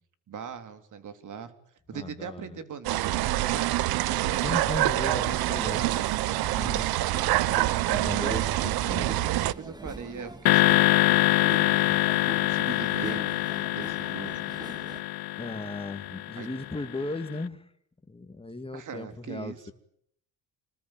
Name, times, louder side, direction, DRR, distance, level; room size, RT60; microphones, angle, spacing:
voice 1, 0.3-1.5 1.9-4.5 5.5-6.0 7.3-7.6 8.0-8.4 9.0-10.8 11.4-11.9 12.4-13.3 13.7-14.3 16.4-16.5 18.7-19.6, right 7 dB, 55° right, 9 dB, 3.4 m, -40 dB
voice 2, 1.9-2.6 4.4-5.9 6.5-6.9 7.9-9.1 15.4-17.7 18.1-19.5, left 2 dB, 15° left, 9 dB, 2.2 m, -36 dB
sound 1, 2.8-9.5, right 16 dB, 75° right, 1.0 m, -26 dB
sound 2, 4.6-15.0, right 1 dB, 10° right, 2.7 m, -43 dB
sound 3, 10.5-16.8, left 18 dB, 80° left, 1.0 m, -25 dB
27.0 x 20.0 x 9.1 m, 0.71 s
cardioid pair, 95°, 37 cm